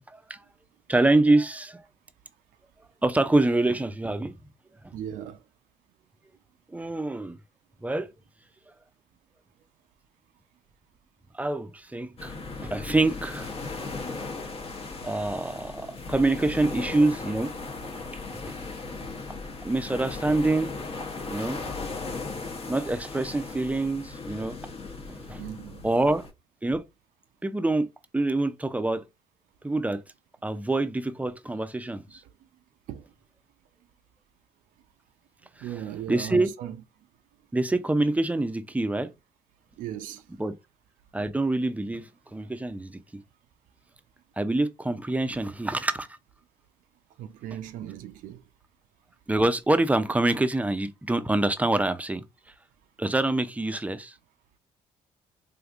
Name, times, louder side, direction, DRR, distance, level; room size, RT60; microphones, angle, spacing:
voice 1, 0.9-1.8 3.0-4.3 6.7-7.4 7.8-8.1 11.3-13.5 15.0-17.5 18.1-18.6 19.6-20.7 21.3-21.6 22.7-24.6 25.1-25.4 25.8-26.3 26.6-26.8 27.4-27.9 28.1-29.1 29.6-30.0 30.4-32.2 35.6-35.7 36.1-36.5 37.5-39.1 40.4-40.5 41.1-43.0 44.4-46.1 49.3-52.2 53.0-54.2, right 2 dB, 10° right, 0.5 m, -26 dB
voice 2, 4.9-5.4 25.4-25.9 32.9-33.0 35.6-36.8 39.8-40.2 47.2-48.4, right 10 dB, 75° right, 0.5 m, -37 dB
sound 1, 12.2-26.3, left 3 dB, 45° left, 0.9 m, -37 dB
3.4 x 2.6 x 2.4 m
supercardioid pair, 60°, 14 cm